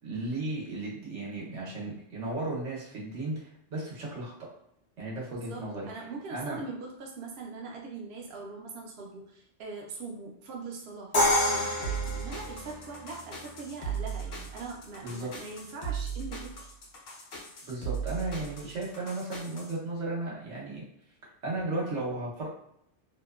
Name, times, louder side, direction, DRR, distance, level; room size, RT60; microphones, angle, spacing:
voice 1, 0.0-4.3 5.0-5.9 6.3-6.6 15.0-15.3 17.6-20.8 21.4-22.5, right 2 dB, 85° right, -5 dB, 1.2 m, -35 dB
voice 2, 5.4-16.6, right 4 dB, 65° right, -1 dB, 0.7 m, -42 dB
Crash cymbal, 11.1-13.1, left 1 dB, 40° left, 0.6 m, -27 dB
sound 1, 11.8-19.7, right 6 dB, 65° left, 0.9 m, -37 dB
2.8 x 2.2 x 2.3 m, 0.74 s
omnidirectional pair, 1.2 m